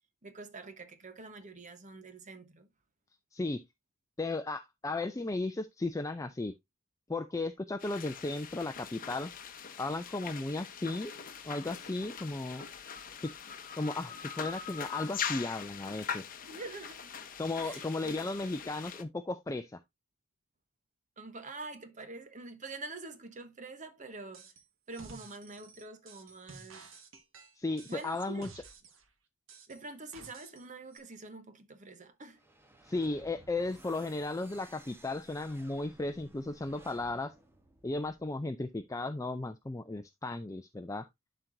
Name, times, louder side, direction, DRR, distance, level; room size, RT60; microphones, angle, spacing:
voice 1, 0.2-2.7 16.5-17.1 17.6-18.3 21.2-24.5 24.9-26.9 27.9-28.5 29.7-32.4, right 3 dB, 40° right, 1.1 m, -46 dB
voice 2, 3.3-3.6 4.2-6.5 7.1-9.3 9.8-11.1 11.4-12.7 13.2-13.3 13.8-16.2 17.4-19.8 27.6-28.5 32.8-37.3 37.8-41.1, left 2 dB, 15° left, 0.4 m, -35 dB
sound 1, 7.8-19.0, left 7 dB, 45° left, 0.9 m, -42 dB
sound 2, 24.3-24.6 24.9-29.1 29.5-30.6 30.9-31.0, right 4 dB, 80° right, 1.5 m, -53 dB
sound 3, 32.3-38.6, right 1 dB, 10° right, 1.0 m, -57 dB
11.5 x 4.6 x 2.6 m
head